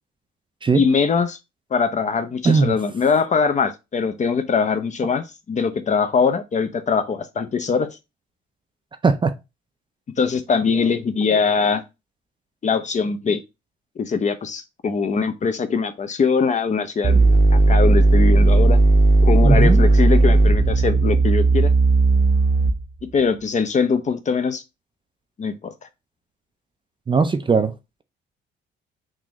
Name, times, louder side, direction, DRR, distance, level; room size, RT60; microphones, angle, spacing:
voice 1, 0.7-1.4 1.7-7.9 10.2-11.8 12.6-13.4 14.0-17.2 17.5-18.8 19.2-21.7 23.1-24.6 25.4-25.7, left 5 dB, 35° left, 0.5 m, -22 dB
voice 2, 9.0-9.3 19.4-19.8 27.1-27.7, right 4 dB, 25° right, 0.4 m, -18 dB
sound 1, 17.0-23.0, right 2 dB, 50° right, 0.7 m, -15 dB
3.7 x 2.6 x 2.9 m
cardioid pair, 90°, 20 cm